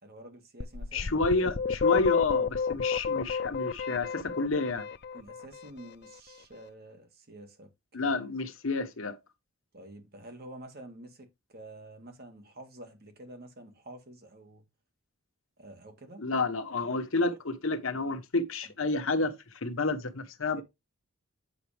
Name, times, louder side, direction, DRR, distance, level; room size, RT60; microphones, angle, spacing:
voice 1, 0.0-1.1 5.1-8.1 9.7-14.6 15.6-16.2 17.3-17.4 20.6-20.7, right 1 dB, 45° right, 2.2 m, -49 dB
sound 1, 0.6-5.5, left 5 dB, 50° left, 0.5 m, -29 dB
voice 2, 0.9-4.9 7.9-9.2 16.2-19.3 19.6-20.6, left 3 dB, 70° left, 1.2 m, -30 dB
8.4 x 5.8 x 3.4 m
head